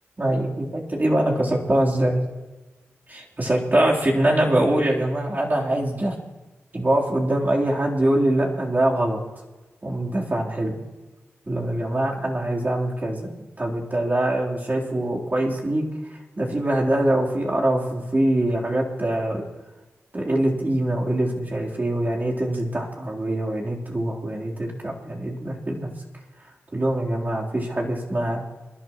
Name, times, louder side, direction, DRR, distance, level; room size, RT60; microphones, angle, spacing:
voice 1, 0.2-2.2 3.1-6.2 6.7-9.2 9.8-10.8 11.5-13.3 13.6-19.4 20.1-25.9 26.7-28.4, right 1 dB, 35° right, -3 dB, 3.6 m, -23 dB
27.0 x 11.5 x 3.1 m, 1.2 s
cardioid pair, 45°, 5 cm